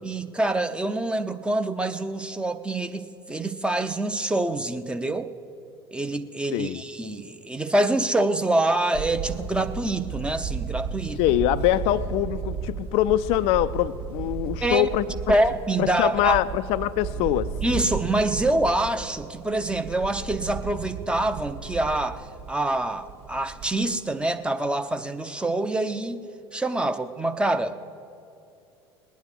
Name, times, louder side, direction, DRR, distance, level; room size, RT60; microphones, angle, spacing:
voice 1, 0.0-5.3 5.9-11.2 14.6-14.9 15.3-16.4 17.6-26.3 26.5-27.8, right 2 dB, 5° right, 8 dB, 0.7 m, -26 dB
Camera, 8.9-23.7, right 6 dB, 50° right, 1.7 m, -34 dB
voice 2, 11.2-15.3 15.8-17.5, left 14 dB, 50° left, 12 dB, 0.4 m, -24 dB
20.0 x 9.4 x 6.3 m, 2.7 s
figure-of-eight pair, 70°, 13 cm